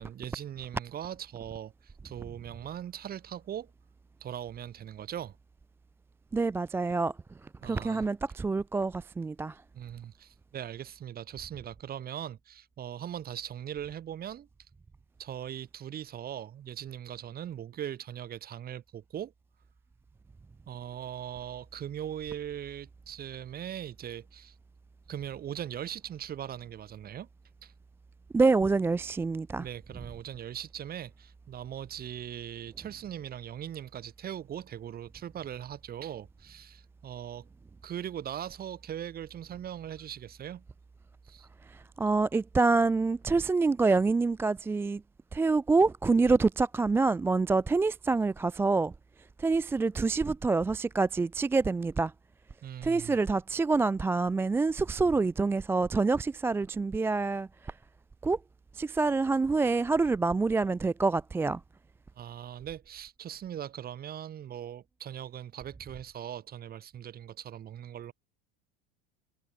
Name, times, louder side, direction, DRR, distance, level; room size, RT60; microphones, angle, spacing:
voice 1, 0.0-3.7 4.2-5.4 7.6-8.0 9.7-14.5 15.2-19.3 20.7-24.5 25.1-27.3 27.6-27.7 29.6-37.5 37.8-40.6 41.2-41.5 52.6-53.2 62.2-68.1, right 10 dB, 30° right, 4.1 m, -40 dB
voice 2, 6.3-7.1 7.6-9.6 28.3-29.7 41.7-45.0 45.3-48.9 49.4-52.1 52.8-57.7 58.2-58.4 58.7-61.6, right 3 dB, 10° right, 0.4 m, -26 dB
supercardioid pair, 150°, 32 cm